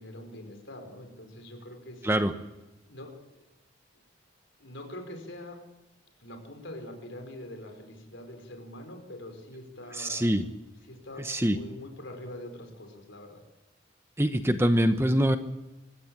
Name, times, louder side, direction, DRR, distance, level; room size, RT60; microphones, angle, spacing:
voice 1, 0.0-2.2 2.9-3.4 4.6-5.6 6.2-10.3 10.9-13.4, left 1 dB, 65° left, 5 dB, 4.6 m, -44 dB
voice 2, 10.0-10.4 11.2-11.6 14.2-15.4, equal, 10° right, 8 dB, 0.9 m, -24 dB
25.0 x 14.5 x 8.7 m, 1.0 s
head